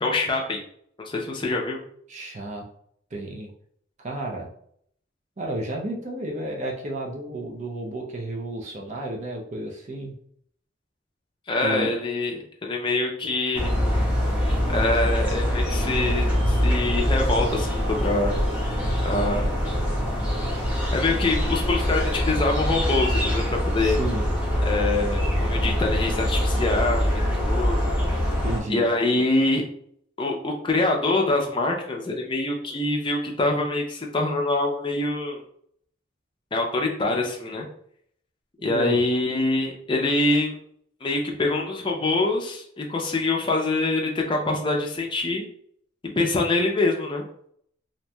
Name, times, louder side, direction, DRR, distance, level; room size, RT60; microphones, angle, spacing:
voice 1, 0.0-0.6 1.1-1.8 11.5-13.7 14.7-18.3 19.0-19.6 20.7-24.0 24.6-27.9 28.7-29.6 30.2-35.4 36.5-37.6 38.6-40.6 41.0-45.4 46.2-47.2, left 2 dB, 25° left, 0 dB, 0.4 m, -25 dB
voice 2, 2.1-2.6 3.1-3.5 4.0-4.5 5.4-10.2 11.6-11.9 21.1-21.2 23.8-24.3 28.4-28.9 38.6-39.0, right 1 dB, 40° right, 0 dB, 0.5 m, -32 dB
sound 1, 13.5-28.6, equal, 10° right, 0.7 m, -24 dB
3.0 x 2.5 x 2.2 m, 0.65 s
head